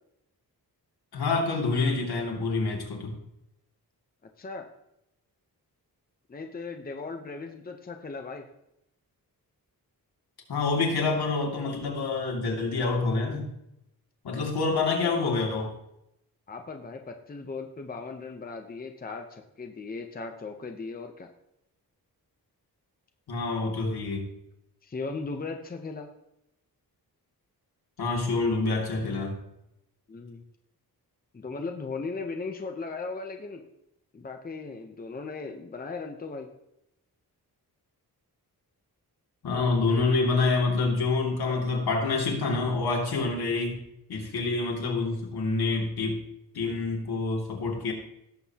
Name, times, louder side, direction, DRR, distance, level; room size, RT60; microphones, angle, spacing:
voice 1, 1.1-3.1 10.5-13.5 14.2-15.7 23.3-24.3 28.0-29.4 39.4-43.8 44.1-46.2 46.5-47.9, left 3 dB, 80° left, 0 dB, 2.6 m, -27 dB
voice 2, 4.4-4.7 6.3-8.4 16.5-21.3 24.8-26.1 30.1-30.4 31.3-33.6 34.1-36.5, left 4 dB, 25° left, 4 dB, 0.8 m, -37 dB
17.0 x 7.6 x 2.9 m, 0.82 s
wide cardioid pair, 150°, 37 cm